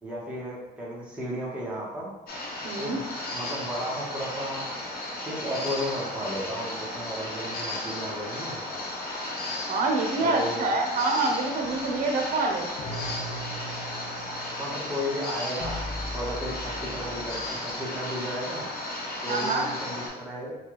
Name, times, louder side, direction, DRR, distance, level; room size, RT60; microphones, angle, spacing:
voice 1, 0.0-2.1 2.8-3.0 3.3-4.6 5.2-8.6 10.2-10.7 14.5-18.7 19.2-20.6, equal, 5° right, -6 dB, 1.1 m, -34 dB
sound 1, 2.3-20.1, left 1 dB, 65° left, 1.0 m, -35 dB
voice 2, 2.6-3.0 9.7-12.7 19.3-19.7, right 3 dB, 55° right, 2 dB, 0.8 m, -26 dB
sound 2, 11.6-17.5, equal, 30° left, 0.6 m, -40 dB
4.4 x 2.3 x 3.1 m, 0.95 s
cardioid pair, 110°, 17 cm